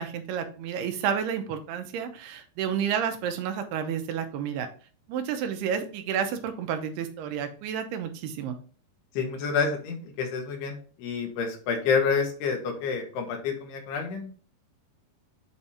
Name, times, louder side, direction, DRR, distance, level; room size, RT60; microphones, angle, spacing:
voice 1, 0.0-4.7 5.1-8.6, right 8 dB, 85° right, 6 dB, 2.8 m, -30 dB
voice 2, 9.1-14.3, left 5 dB, 85° left, 3 dB, 3.3 m, -28 dB
8.1 x 2.8 x 4.9 m, 0.39 s
omnidirectional pair, 4.7 m